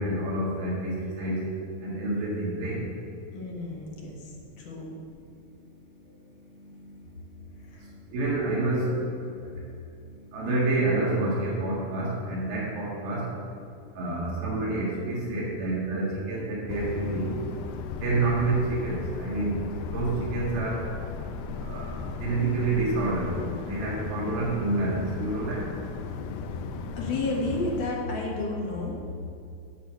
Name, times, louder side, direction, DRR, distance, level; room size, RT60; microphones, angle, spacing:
voice 1, 0.0-1.4 1.8-2.8 6.8-6.9 7.8-9.3 10.3-13.3 13.9-17.3 17.9-19.6 19.9-20.8 21.6-25.7, right 2 dB, 85° right, -5 dB, 3.7 m, -28 dB
voice 2, 3.3-4.9 7.6-7.9 14.0-14.3 26.9-29.2, left 2 dB, 65° left, -1 dB, 2.7 m, -32 dB
sound 1, 16.7-27.9, left 5 dB, 90° left, 1.8 m, -36 dB
8.3 x 6.0 x 6.7 m, 2.6 s
omnidirectional pair, 4.2 m